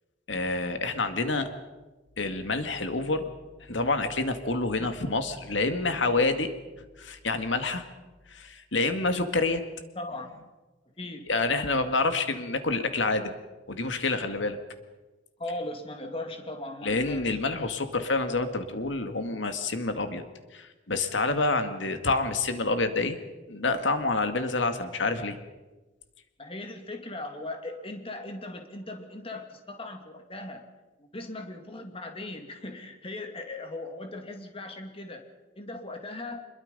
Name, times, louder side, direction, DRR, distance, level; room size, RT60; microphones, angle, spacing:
voice 1, 0.3-1.5 2.2-3.3 3.6-6.5 7.0-7.9 8.3-9.6 11.3-13.3 13.7-14.6 16.8-20.2 20.5-23.2 23.5-25.4, left 3 dB, 80° left, 8 dB, 2.1 m, -27 dB
voice 2, 9.9-10.3 11.0-11.3 15.4-17.4 26.4-30.7 31.0-35.2 35.6-36.5, left 2 dB, 30° left, 4 dB, 2.5 m, -38 dB
25.0 x 22.0 x 5.4 m, 1.2 s
head